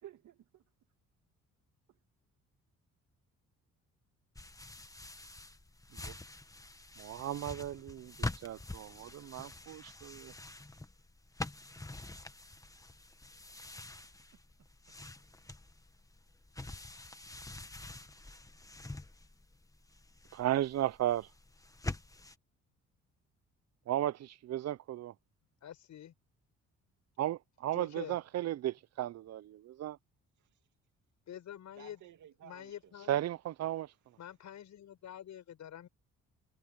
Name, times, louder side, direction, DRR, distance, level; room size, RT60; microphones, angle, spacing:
voice 1, 0.0-0.6 13.5-13.7 14.9-15.0 18.0-18.1 31.8-32.9, right 11 dB, 75° right, 2.6 m, -55 dB
sound 1, 4.4-22.4, left 2 dB, 10° left, 1.5 m, -46 dB
voice 2, 7.0-10.3 20.3-21.3 23.9-25.1 27.2-30.0 33.1-33.9, right 13 dB, 60° right, 0.6 m, -35 dB
voice 3, 25.6-26.1 27.7-28.2 31.3-32.0 32.4-33.3 34.2-35.9, left 10 dB, 70° left, 7.2 m, -47 dB
cardioid pair, 90°, 30 cm